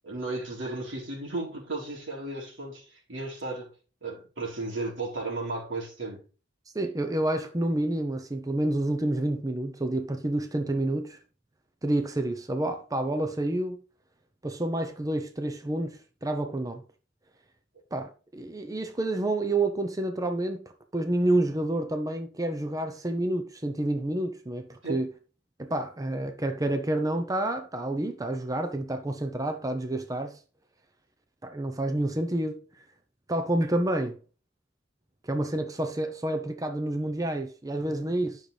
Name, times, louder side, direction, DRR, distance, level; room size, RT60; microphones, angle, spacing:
voice 1, 0.0-3.7 4.0-6.2 24.8-25.0, right 2 dB, 85° right, 3.9 m, -34 dB
voice 2, 6.7-11.2 11.8-13.8 14.4-16.8 17.9-20.6 20.9-25.1 25.6-30.4 31.4-32.6 33.3-34.2 35.2-38.4, right 1 dB, 20° right, 0.7 m, -29 dB
10.5 x 6.3 x 3.3 m
head